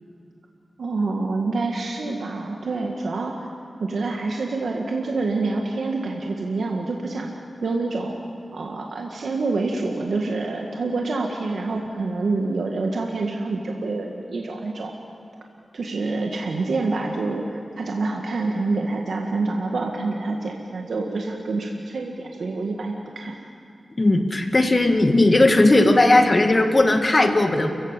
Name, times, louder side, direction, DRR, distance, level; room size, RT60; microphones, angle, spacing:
voice 1, 0.8-3.5 3.8-7.3 7.6-8.2 8.5-14.9 15.7-23.3, right 3 dB, 80° right, 0 dB, 1.8 m, -27 dB
voice 2, 24.0-27.7, left 2 dB, 35° left, 5 dB, 2.1 m, -17 dB
29.5 x 15.5 x 7.6 m, 2.5 s
wide cardioid pair, 75°, 0 cm